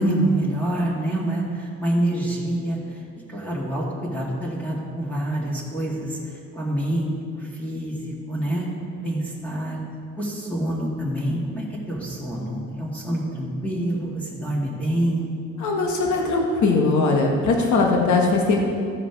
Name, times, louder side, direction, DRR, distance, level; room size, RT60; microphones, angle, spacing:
voice 1, 0.0-3.0 3.3-8.7 9.0-9.8 10.2-15.3, right 1 dB, 5° left, -6 dB, 2.1 m, -26 dB
voice 2, 15.6-18.6, left 3 dB, 75° left, 1 dB, 1.4 m, -20 dB
14.0 x 5.0 x 4.6 m, 2.3 s
cardioid pair, 90°, 30 cm